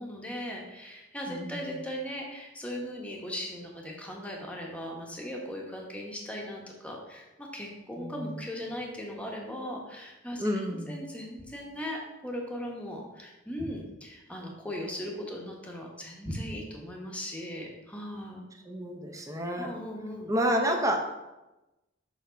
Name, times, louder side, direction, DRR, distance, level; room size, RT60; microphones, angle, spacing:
voice 1, 0.0-10.5 10.9-18.4 19.6-20.3, equal, 5° left, -1 dB, 1.1 m, -38 dB
voice 2, 1.3-1.7 8.0-8.4 10.4-11.0 18.7-19.7 20.3-21.0, equal, 15° right, 2 dB, 0.8 m, -30 dB
7.1 x 3.3 x 5.1 m, 1.0 s
head